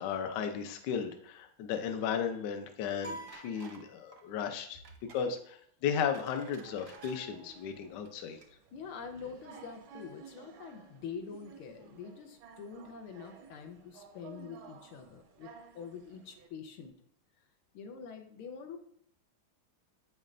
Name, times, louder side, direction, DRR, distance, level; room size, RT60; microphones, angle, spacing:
voice 1, 0.0-4.8 5.1-8.4, left 7 dB, 65° left, 6 dB, 1.2 m, -35 dB
sound 1, 3.0-4.5, right 1 dB, 20° left, 0.7 m, -46 dB
sound 2, 3.3-3.9 4.1-4.3 4.8-5.3 5.8-7.2 7.9-8.1 8.4-8.5, right 4 dB, 55° right, 0.9 m, -55 dB
sound 3, 6.6-16.5, right 6 dB, 75° right, 1.5 m, -55 dB
voice 2, 8.7-17.0 17.7-18.8, left 6 dB, 85° left, 5 dB, 1.7 m, -45 dB
8.3 x 5.3 x 2.5 m, 0.64 s
omnidirectional pair, 2.3 m